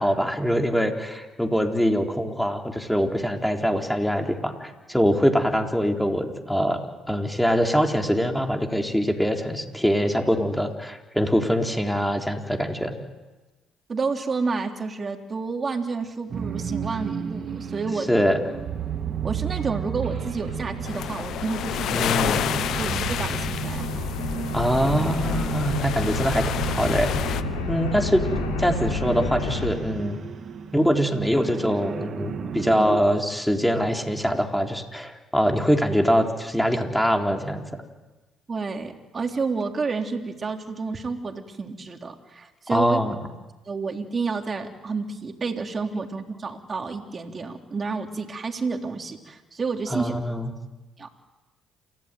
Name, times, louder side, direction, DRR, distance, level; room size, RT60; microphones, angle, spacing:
voice 1, 0.0-13.0 18.1-18.4 21.9-22.5 24.5-27.4 27.7-28.3 28.6-30.2 30.7-37.6 42.7-43.1 49.9-50.5, equal, 5° left, 3 dB, 4.0 m, -23 dB
voice 2, 13.9-18.1 19.2-22.2 22.8-24.1 38.5-43.0 43.7-50.1 51.0-51.1, right 4 dB, 35° right, 4 dB, 3.5 m, -30 dB
sound 1, 16.3-33.0, right 7 dB, 55° right, 2.4 m, -33 dB
sound 2, 20.2-29.7, left 4 dB, 90° left, 4.3 m, -31 dB
sound 3, 20.9-27.4, left 10 dB, 65° left, 0.9 m, -30 dB
28.5 x 16.0 x 9.4 m, 1.2 s
hypercardioid pair, 55°, 0 cm